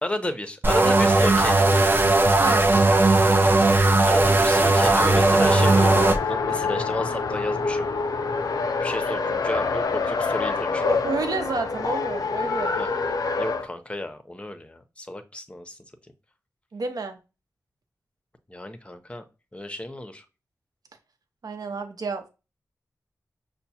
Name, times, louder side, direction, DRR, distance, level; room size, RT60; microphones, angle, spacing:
voice 1, 0.0-1.7 4.0-7.9 8.8-10.9 12.8-12.9 13.4-15.8 18.5-19.2 19.5-20.2, left 1 dB, 15° left, 7 dB, 0.6 m, -32 dB
sound 1, 0.6-6.2, right 2 dB, 30° right, 0.5 m, -18 dB
Race car auto racing, 4.4-13.7, left 4 dB, 65° left, 0.4 m, -27 dB
voice 2, 10.9-12.8 16.7-17.2 21.4-22.3, right 3 dB, 70° right, 6 dB, 0.7 m, -29 dB
5.7 x 2.1 x 2.8 m, 0.29 s
cardioid pair, 65°, 7 cm